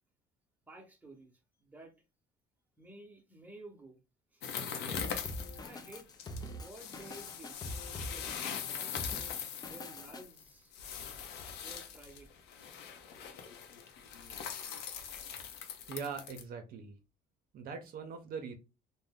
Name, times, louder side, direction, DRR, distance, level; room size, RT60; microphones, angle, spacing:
voice 1, 0.6-1.9 2.8-4.0 4.3-4.4 4.7-5.1 5.6-6.1 6.5-7.6 8.0-8.3 8.6-9.1 9.6-10.8 11.6-12.3, right 2 dB, 10° right, 0.8 m, -53 dB
sound 1, 4.4-16.4, left 7 dB, 85° left, 0.6 m, -42 dB
Drum kit, 4.9-10.2, left 1 dB, 25° left, 0.4 m, -44 dB
voice 2, 15.9-16.9 17.5-18.5, right 5 dB, 60° right, 0.6 m, -41 dB
2.5 x 2.1 x 3.5 m
cardioid pair, 110°, 17 cm